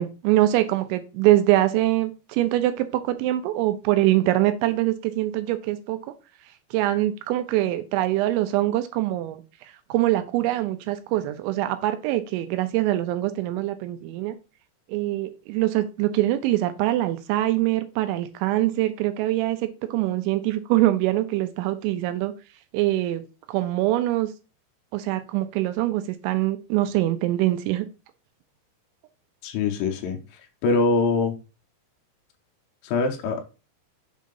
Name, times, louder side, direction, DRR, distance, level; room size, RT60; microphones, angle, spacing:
voice 1, 0.0-6.0 6.7-9.4 9.9-14.4 14.9-22.3 22.7-23.2 23.5-24.3 24.9-27.9, right 15 dB, 80° right, 2.9 m, -23 dB
voice 2, 29.4-30.2 30.6-31.3 32.8-33.5, left 4 dB, 75° left, 2.8 m, -23 dB
7.4 x 2.8 x 5.3 m
omnidirectional pair, 5.5 m